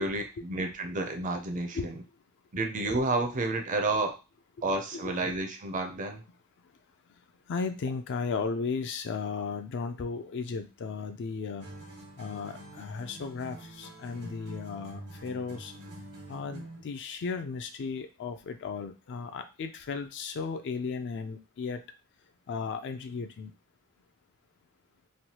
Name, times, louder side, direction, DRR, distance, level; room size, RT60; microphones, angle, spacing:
voice 1, 0.0-1.9 2.5-4.2 4.6-6.2, right 2 dB, 35° right, 6 dB, 0.5 m, -30 dB
voice 2, 7.1-11.7 12.2-15.7 16.3-21.8 22.5-23.5, left 5 dB, 55° left, 8 dB, 0.4 m, -35 dB
sound 1, 11.6-16.9, right 1 dB, 80° right, 1.3 m, -46 dB
3.2 x 2.2 x 2.8 m, 0.30 s
head